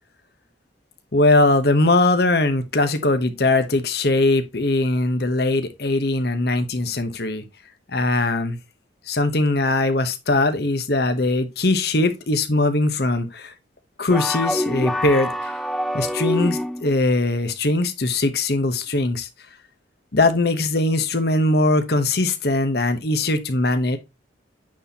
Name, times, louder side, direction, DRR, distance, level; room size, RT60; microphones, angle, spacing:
voice 1, 1.1-7.4 7.9-8.6 9.1-13.5 14.0-15.5 15.9-19.3 20.1-24.0, left 2 dB, 55° left, 1.0 m, -20 dB
sound 1, 14.1-17.0, left 1 dB, ahead, 0.4 m, -25 dB
8.9 x 4.2 x 2.8 m
head